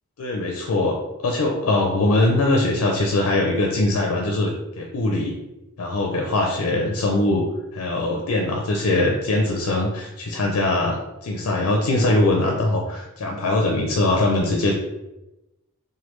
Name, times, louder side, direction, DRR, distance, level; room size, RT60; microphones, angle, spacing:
voice 1, 0.2-1.0 1.2-4.5 4.8-5.4 5.8-7.5 7.7-14.7, left 2 dB, 70° left, 0 dB, 0.5 m, -21 dB
3.1 x 2.2 x 3.1 m, 0.95 s
head